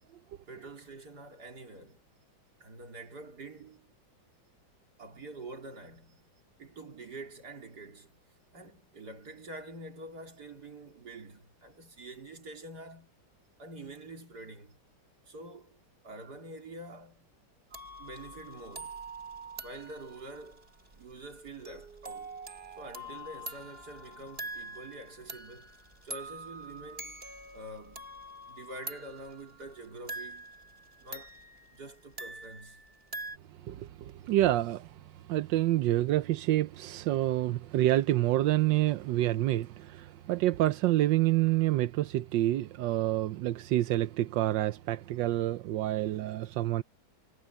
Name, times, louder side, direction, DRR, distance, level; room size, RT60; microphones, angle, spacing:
voice 1, 0.5-2.0 2.6-3.9 5.0-8.1 8.5-13.1 13.6-14.8 15.3-17.3 18.0-19.0 19.6-20.7 20.9-22.3 22.8-25.8 26.0-27.2 27.5-28.1 28.5-30.5 31.0-31.4 31.7-32.8, right 2 dB, 50° right, 3.8 m, -46 dB
sound 1, 17.7-33.4, right 2 dB, 25° right, 2.5 m, -45 dB
voice 2, 33.6-46.8, right 14 dB, 70° right, 1.2 m, -28 dB
omnidirectional pair, 2.3 m